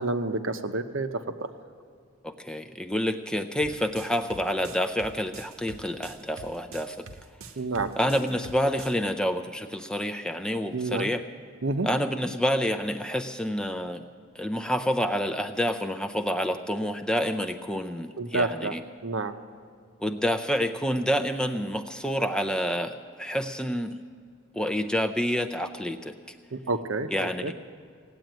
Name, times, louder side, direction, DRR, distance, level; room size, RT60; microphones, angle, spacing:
voice 1, 0.0-1.5 7.6-7.9 10.7-11.1 11.6-11.9 18.2-18.7 19.0-19.3 26.5-27.1 27.4-27.5, right 3 dB, 65° right, 9 dB, 0.8 m, -29 dB
voice 2, 2.2-7.0 8.0-11.2 11.8-14.0 14.4-18.8 20.0-24.0 24.5-26.1 27.1-27.4, equal, 5° left, 8 dB, 0.5 m, -28 dB
sound 1, 3.6-9.0, right 4 dB, 80° right, 1.0 m, -45 dB
17.0 x 8.5 x 9.1 m, 2.2 s
head